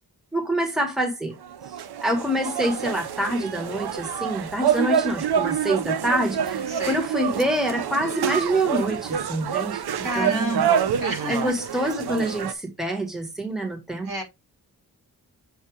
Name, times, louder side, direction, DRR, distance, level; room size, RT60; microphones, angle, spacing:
voice 1, 0.3-1.3 1.7-10.6 11.3-14.1, right 1 dB, ahead, 1.6 m, -26 dB
sound 1, 1.4-12.5, right 8 dB, 80° right, 0.7 m, -27 dB
voice 2, 6.7-7.0 10.0-11.5 14.0-14.2, right 2 dB, 60° right, 3.3 m, -29 dB
7.6 x 2.7 x 4.8 m
wide cardioid pair, 85°, 38 cm